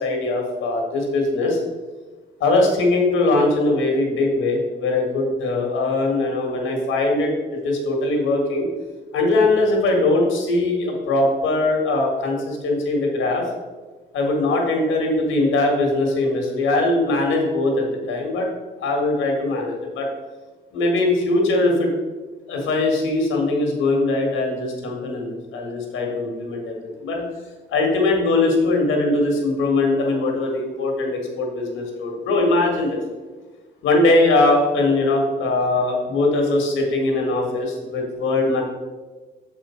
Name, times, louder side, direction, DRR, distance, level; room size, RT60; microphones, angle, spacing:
voice 1, 0.0-1.6 2.4-8.7 9.1-13.4 14.1-18.5 18.8-20.1 20.7-21.9 22.5-27.3 27.7-33.0 33.8-38.6, left 2 dB, 85° left, 1 dB, 1.8 m, -21 dB
6.7 x 5.0 x 4.4 m, 1.3 s
cardioid pair, 90°, 20 cm